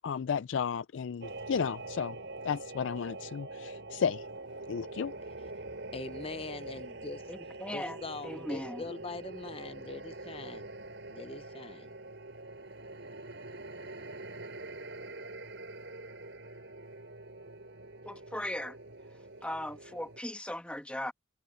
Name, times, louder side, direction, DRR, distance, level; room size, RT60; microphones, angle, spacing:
voice 1, 0.0-2.2 2.4-4.3 4.7-5.1, left 6 dB, 75° left, 0.4 m, -33 dB
sound 1, 1.2-20.2, right 2 dB, 65° right, 5.4 m, -44 dB
voice 2, 5.9-7.3 7.7-10.7 11.1-11.9, left 3 dB, 30° left, 0.7 m, -42 dB
voice 3, 7.3-8.8 18.0-18.8 19.4-21.1, left 1 dB, 5° left, 1.3 m, -38 dB
head